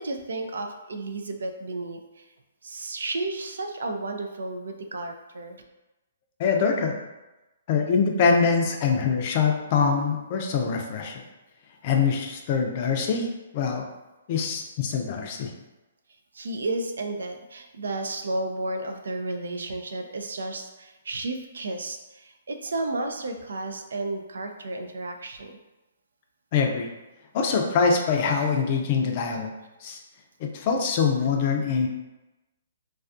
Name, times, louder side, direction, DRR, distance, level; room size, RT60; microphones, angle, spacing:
voice 1, 0.0-2.2 2.6-5.6 16.3-25.5, right 2 dB, 75° right, 5 dB, 0.3 m, -32 dB
voice 2, 6.4-7.0 7.7-11.2 11.8-13.3 13.5-13.9 14.3-15.5 26.5-26.9 27.3-29.5 29.8-30.0 30.4-31.9, left 5 dB, 45° left, 2 dB, 0.4 m, -24 dB
2.3 x 2.3 x 2.5 m, 1.0 s
hypercardioid pair, 135°, 0 cm